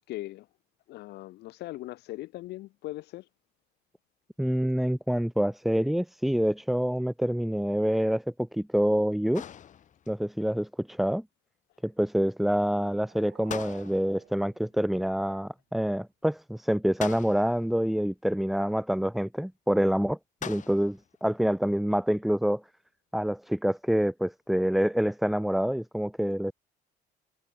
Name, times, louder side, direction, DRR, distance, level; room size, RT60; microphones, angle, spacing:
voice 1, 0.1-0.4 0.9-3.3, left 17 dB, 75° left, 1.0 m, -39 dB
voice 2, 4.4-9.4 10.1-11.2 11.8-20.2 20.5-22.6 23.1-26.5, equal, ahead, 0.3 m, -27 dB
sound 1, 9.3-10.2 13.5-14.3 17.0-17.7 20.4-21.1, left 9 dB, 45° left, 1.6 m, -41 dB
sound 2, 12.6-15.5, right 16 dB, 75° right, 1.6 m, -56 dB
cardioid pair, 110°, 17 cm